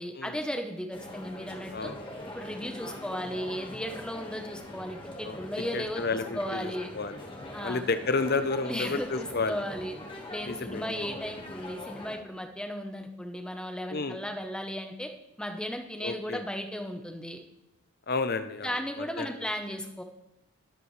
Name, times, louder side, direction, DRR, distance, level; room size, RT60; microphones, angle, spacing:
voice 1, 0.0-1.9 2.3-6.0 6.3-6.9 7.5-7.8 8.6-9.9 10.3-15.1 15.4-17.4 18.6-20.0, equal, 5° left, 5 dB, 0.8 m, -35 dB
sound 1, 0.9-12.2, left 1 dB, 20° left, 1.5 m, -42 dB
voice 2, 1.7-2.0 5.2-5.5 5.7-7.3 7.6-9.6 10.4-11.0 13.9-14.2 16.0-16.4 18.1-19.3, left 4 dB, 45° left, 10 dB, 0.7 m, -31 dB
21.0 x 8.3 x 3.2 m, 0.92 s
head